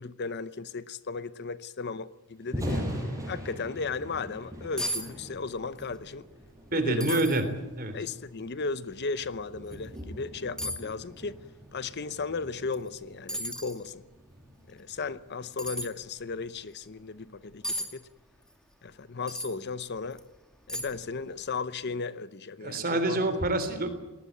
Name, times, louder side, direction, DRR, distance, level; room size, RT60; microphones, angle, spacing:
voice 1, 0.0-2.8 3.3-6.3 6.7-7.2 7.9-11.4 11.7-14.0 14.7-18.1 18.8-20.2 20.7-23.2, left 4 dB, 50° left, 0.8 m, -35 dB
Thunder, 2.4-16.5, equal, 15° right, 6.5 m, -41 dB
sound 1, 4.8-5.1 5.3-5.9 6.3-6.4 7.0-7.4 8.1-8.2 9.7-9.8 10.6-10.9 12.7-12.9 13.3-13.8 15.6-15.9 17.6-17.9 19.3-19.5 20.1-20.2 20.7-21.1 21.4-21.5, equal, 5° left, 2.5 m, -34 dB
voice 2, 6.7-7.4 7.7-7.9 22.6-23.9, right 2 dB, 45° right, 3.4 m, -27 dB
21.0 x 19.0 x 9.3 m
head